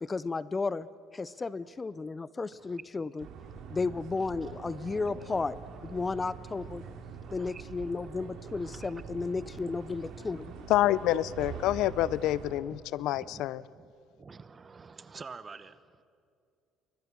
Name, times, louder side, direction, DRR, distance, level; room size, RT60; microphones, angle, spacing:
voice 1, 0.1-0.9 1.1-3.3 3.7-5.6 5.8-6.8 7.3-10.5, left 4 dB, 20° left, 0.5 m, -33 dB
voice 2, 2.5-2.8 4.9-5.4 6.8-7.0 7.3-7.6 8.5-9.0 12.7-12.8 13.1-13.4 13.7-13.9 14.1-16.0, right 4 dB, 25° right, 0.9 m, -49 dB
sound 1, 3.2-12.6, right 6 dB, 65° right, 3.1 m, -44 dB
voice 3, 10.7-13.6, left 14 dB, 75° left, 0.5 m, -27 dB
28.5 x 24.5 x 6.2 m
cardioid pair, 135°, 0 cm